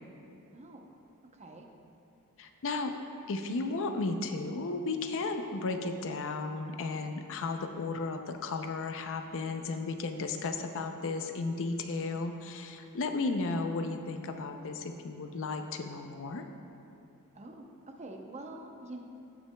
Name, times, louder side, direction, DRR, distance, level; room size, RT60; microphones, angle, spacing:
voice 1, 0.5-0.9 1.3-1.7 17.3-19.0, right 2 dB, 30° right, 2 dB, 0.7 m, -46 dB
voice 2, 2.4-2.9 3.3-16.4, left 3 dB, 60° left, 6 dB, 0.5 m, -34 dB
16.5 x 6.0 x 2.2 m, 2.8 s
head